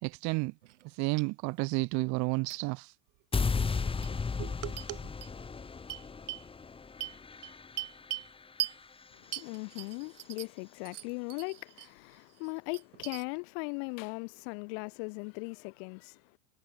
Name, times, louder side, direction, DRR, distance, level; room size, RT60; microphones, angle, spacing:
voice 1, 0.0-0.5 0.8-2.9 4.4-5.0, right 27 dB, 50° right, 2.4 m, -32 dB
sound 1, 0.6-0.9 1.2-1.3 2.5-2.6 3.6-3.7 4.0-4.1 4.8-4.9 5.2-5.3 5.9-6.5 7.0-8.3 8.6-8.8 9.3-10.6 10.9-11.9 12.3-13.2, right 15 dB, 75° right, 2.6 m, -40 dB
sound 2, 3.3-9.5, left 5 dB, 15° left, 4.7 m, -35 dB
voice 2, 9.1-16.4, left 39 dB, 55° left, 5.6 m, -39 dB
hypercardioid pair, 120°, 36 cm